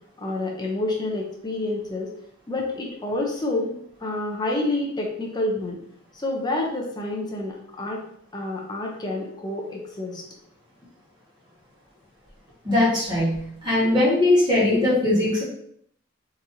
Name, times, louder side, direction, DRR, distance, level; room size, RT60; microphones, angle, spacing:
voice 1, 0.2-2.1 2.5-3.7 4.0-5.8 6.1-8.0 8.3-10.2, left 2 dB, 20° left, -1 dB, 0.6 m, -28 dB
voice 2, 12.6-15.4, left 2 dB, 20° right, -9 dB, 1.4 m, -20 dB
3.9 x 2.9 x 2.6 m, 0.68 s
head